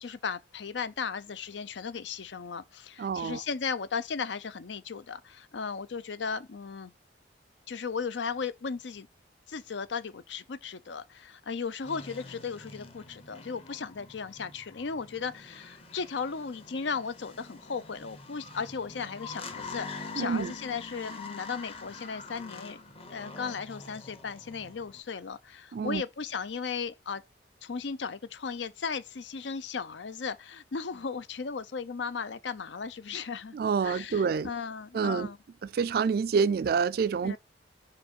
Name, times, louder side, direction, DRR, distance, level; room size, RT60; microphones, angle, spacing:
voice 1, 0.0-6.9 7.7-9.1 9.5-22.8 23.1-27.2 27.6-33.6 33.8-35.4 37.2-37.4, left 5 dB, 80° left, 0.6 m, -36 dB
voice 2, 3.0-3.4 20.2-20.5 25.7-26.0 33.5-34.5 34.9-35.3 35.6-37.4, right 6 dB, 55° right, 0.3 m, -27 dB
sound 1, 11.8-25.0, left 3 dB, 30° left, 0.9 m, -45 dB
5.8 x 3.4 x 5.3 m
head